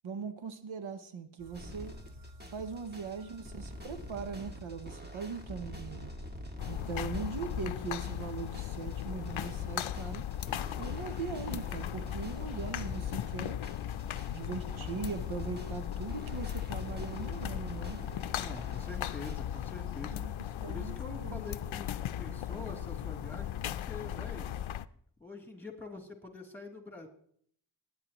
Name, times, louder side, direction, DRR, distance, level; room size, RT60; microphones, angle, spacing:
voice 1, 0.0-2.0 2.5-6.1 6.7-10.2 10.8-13.6 14.2-18.0 20.0-20.3 20.6-21.4, right 5 dB, 80° right, 1.0 m, -40 dB
sound 1, 1.4-7.5, equal, 45° right, 1.3 m, -50 dB
sound 2, 1.5-19.4, left 1 dB, 20° right, 1.8 m, -47 dB
voice 2, 2.7-3.1 18.4-20.3 20.7-24.5 25.2-27.1, left 3 dB, 5° left, 2.9 m, -45 dB
sound 3, 6.6-24.8, left 11 dB, 80° left, 0.6 m, -37 dB
19.5 x 9.7 x 3.0 m
wide cardioid pair, 80°, 47 cm